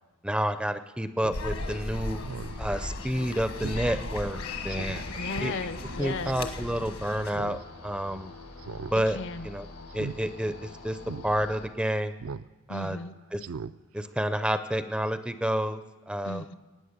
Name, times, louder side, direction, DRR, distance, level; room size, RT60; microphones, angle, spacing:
voice 1, 0.2-2.2 2.6-4.4 4.6-5.0 5.4-5.5 6.0-8.3 8.9-9.2 9.4-9.7 9.9-11.0 11.2-12.1 12.7-13.0 13.3-13.4 13.9-16.4, equal, 5° right, 10 dB, 0.4 m, -29 dB
Speech synthesizer, 1.2-1.4 1.8-1.9 2.2-2.6 3.0-3.1 3.6-3.8 4.2-4.3 4.7-5.0 6.0-6.3 7.3-7.6 7.9-8.0 8.6-8.9 9.2-9.5 9.9-10.2 10.6-10.7 11.0-11.3 12.2-12.5 12.8-12.9 13.4-13.7 14.1-14.2, right 5 dB, 65° right, 0.4 m, -39 dB
sound 1, 1.3-7.4, left 2 dB, 70° left, 1.4 m, -36 dB
sound 2, 1.9-11.7, left 2 dB, 90° left, 1.7 m, -45 dB
voice 2, 5.1-6.4 9.1-9.5 12.7-13.2 16.2-16.5, left 3 dB, 55° left, 14 dB, 0.6 m, -36 dB
18.0 x 9.3 x 6.6 m, 1.2 s
head